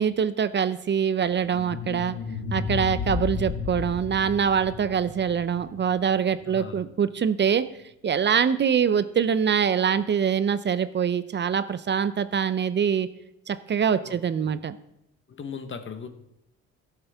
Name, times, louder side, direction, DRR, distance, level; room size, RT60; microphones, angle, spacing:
voice 1, 0.0-2.2 2.5-7.7 8.0-13.1 13.5-14.8, right 7 dB, 35° right, 0.5 m, -24 dB
sound 1, 1.2-6.4, left 5 dB, 90° left, 1.8 m, -33 dB
voice 2, 6.4-6.8 14.0-14.5 15.3-16.1, left 6 dB, 40° left, 1.1 m, -38 dB
14.0 x 8.2 x 3.5 m
cardioid pair, 90°, 30 cm